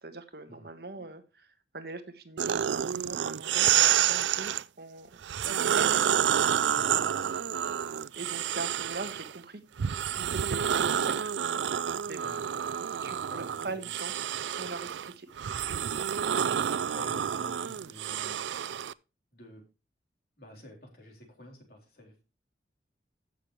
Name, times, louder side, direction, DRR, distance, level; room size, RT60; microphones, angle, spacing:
voice 1, 0.0-5.1 5.4-6.0 8.2-9.6 10.3-11.3 11.6-11.8 12.1-12.3 13.0-15.3, right 3 dB, 60° right, 8 dB, 1.4 m, -41 dB
sound 1, 2.4-4.6 5.2-9.3 9.8-18.9, right 9 dB, 85° right, 0.4 m, -29 dB
voice 2, 6.7-7.1 8.5-8.8 12.2-12.5 13.3-13.9 16.3-18.4 19.3-19.7 20.4-22.2, left 1 dB, 55° left, 0 dB, 3.9 m, -49 dB
15.5 x 6.7 x 3.2 m, 0.29 s
head